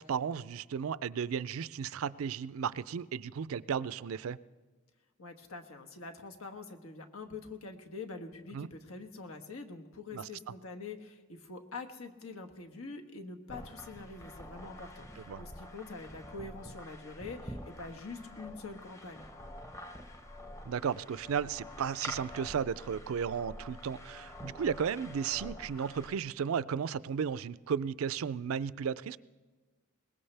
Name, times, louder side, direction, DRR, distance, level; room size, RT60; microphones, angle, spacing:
voice 1, 0.0-4.4 8.5-8.7 10.1-10.3 15.3-15.4 20.6-29.2, right 7 dB, 75° right, 18 dB, 0.4 m, -34 dB
voice 2, 5.2-19.3, left 3 dB, 80° left, 4 dB, 1.4 m, -45 dB
sound 1, 13.5-26.1, left 1 dB, 15° left, 0.8 m, -47 dB
21.5 x 19.5 x 3.4 m, 1.3 s
head